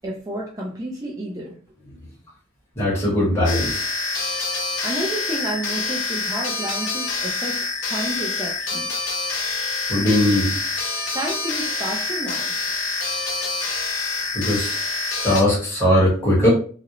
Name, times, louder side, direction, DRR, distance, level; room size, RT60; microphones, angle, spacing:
voice 1, 0.0-1.6 4.8-8.9 11.1-12.5, right 1 dB, 20° right, -3 dB, 0.3 m, -30 dB
voice 2, 2.7-3.8 9.9-10.6 14.3-14.7 15.2-16.5, left 1 dB, 15° left, -8 dB, 1.0 m, -19 dB
sound 1, 3.4-15.4, left 3 dB, 80° left, 0.6 m, -26 dB
2.4 x 2.0 x 2.8 m, 0.43 s
head